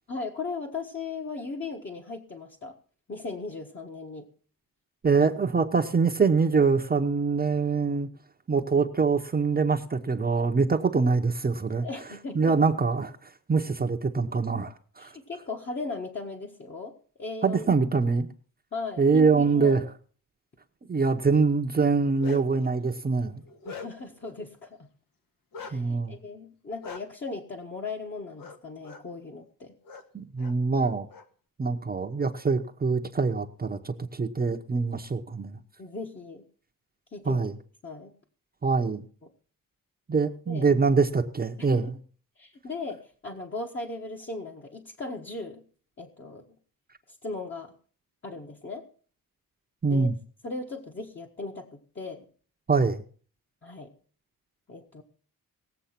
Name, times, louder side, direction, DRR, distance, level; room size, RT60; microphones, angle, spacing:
voice 1, 0.1-2.8 3.1-4.3 11.8-12.5 15.0-16.9 17.2-17.6 18.7-19.8 23.6-24.9 25.6-29.7 35.8-36.4 37.1-37.4 37.8-38.1 40.5-40.7 41.6-41.8 42.4-45.6 46.0-46.4 47.1-47.7 48.2-48.8 49.9-50.1 50.4-52.3 53.6-53.9 54.7-55.0, left 3 dB, 35° left, 0 dB, 1.6 m, -37 dB
voice 2, 5.0-8.1 8.5-11.9 12.3-15.2 17.4-18.3 19.0-19.8 20.9-23.4 25.7-26.2 30.1-31.1 31.6-35.6 37.3-37.5 38.6-39.0 40.1-41.8 49.8-50.1 52.7-53.0, right 4 dB, 25° right, 4 dB, 0.9 m, -24 dB
Bark, 21.9-22.6 23.2-24.2 25.5-25.7 26.8-27.0 28.4-28.6 28.8-29.0 29.8-30.0 30.4-31.2, left 4 dB, 75° left, 1.9 m, -42 dB
19.0 x 7.7 x 5.9 m, 0.42 s
wide cardioid pair, 155°, 34 cm